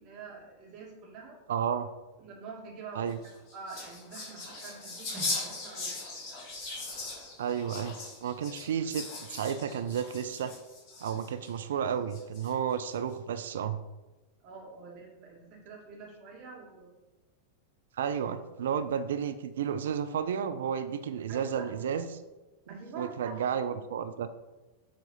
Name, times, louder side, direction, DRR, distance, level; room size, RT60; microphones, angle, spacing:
voice 1, 0.0-1.4 2.2-5.9 11.9-12.0 14.4-16.9 21.3-21.7 22.7-23.5, right 4 dB, 40° right, -3 dB, 2.3 m, -46 dB
voice 2, 1.5-1.9 2.9-3.2 7.4-10.5 11.0-13.8 17.9-22.2 23.0-24.3, right 8 dB, 60° right, 11 dB, 0.4 m, -32 dB
sound 1, 3.1-11.5 12.1-12.7, left 2 dB, 35° left, 2.5 m, -39 dB
7.3 x 3.8 x 5.6 m, 1.1 s
figure-of-eight pair, 90°, 0 cm